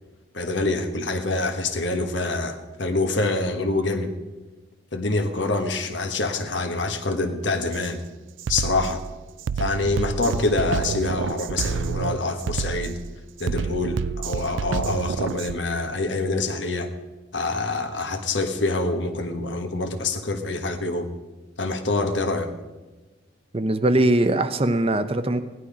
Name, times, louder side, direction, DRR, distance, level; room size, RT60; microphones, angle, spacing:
voice 1, 0.3-4.1 4.9-8.0 8.5-9.0 9.6-13.0 13.4-16.9 17.3-21.1 21.6-22.5, left 2 dB, 75° left, 7 dB, 1.3 m, -26 dB
Drum kit, 7.7-7.9 8.4-15.6, right 6 dB, 80° right, 0.4 m, -29 dB
voice 2, 23.5-25.4, right 1 dB, 30° right, 10 dB, 0.6 m, -21 dB
16.5 x 11.5 x 5.0 m, 1.2 s
head